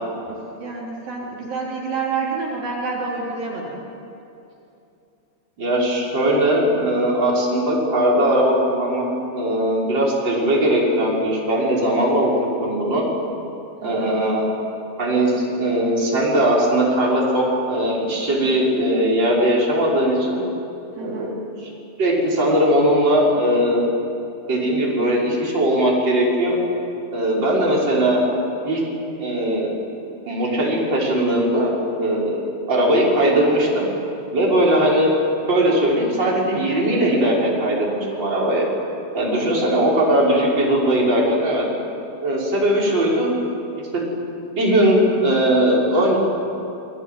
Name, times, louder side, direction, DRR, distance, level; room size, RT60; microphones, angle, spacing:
voice 1, 0.2-3.8 13.8-14.2 21.0-21.3 39.2-39.5, right 4 dB, 65° right, -3 dB, 5.5 m, -29 dB
voice 2, 5.6-9.1 9.3-12.3 12.6-13.1 13.8-14.5 15.0-20.4 21.0-21.3 21.6-21.7 22.0-23.9 24.5-26.6 27.1-28.3 28.6-28.8 29.2-29.8 30.3-33.9 34.3-35.1 35.5-38.7 39.1-41.6 42.2-43.3 43.9-44.1 44.5-46.2, right 1 dB, 30° right, -4 dB, 6.2 m, -19 dB
28.5 x 22.5 x 9.4 m, 2.7 s
omnidirectional pair, 4.3 m